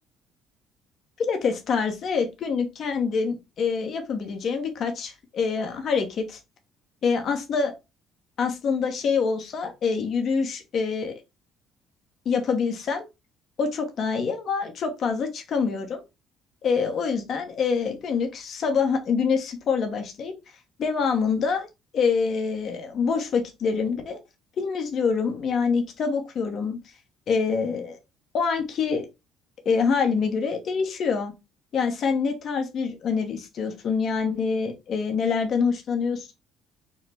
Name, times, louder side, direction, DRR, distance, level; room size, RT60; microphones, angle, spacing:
voice 1, 1.2-6.4 7.0-7.7 8.4-11.1 12.2-13.1 13.6-16.0 16.6-20.3 20.8-21.7 21.9-24.2 24.6-26.8 27.3-28.0 28.3-29.0 29.6-31.3 31.7-36.3, left 5 dB, 55° left, 5 dB, 1.0 m, -25 dB
5.5 x 2.2 x 3.4 m, 0.24 s
supercardioid pair, 80°, 0 cm